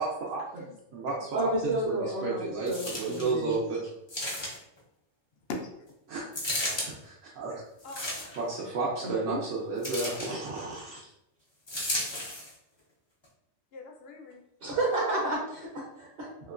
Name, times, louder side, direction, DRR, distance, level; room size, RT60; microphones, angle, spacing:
voice 1, 0.0-3.8 6.1-6.2 6.8-7.6 8.4-11.0 16.4-16.5, right 3 dB, 80° right, -5 dB, 1.0 m, -33 dB
voice 2, 1.3-3.6 9.0-9.4 14.6-16.3, right 2 dB, 55° right, -4 dB, 0.8 m, -31 dB
sound 1, 2.7-3.3 4.1-4.8 6.3-6.9 7.8-8.5 9.8-10.3 11.7-12.5 13.2-13.3, left 1 dB, 30° left, 0.6 m, -33 dB
voice 3, 7.8-8.4 10.4-10.7 13.7-14.4, left 3 dB, 60° left, 2 dB, 0.7 m, -42 dB
3.0 x 2.9 x 2.4 m, 0.82 s
omnidirectional pair, 1.3 m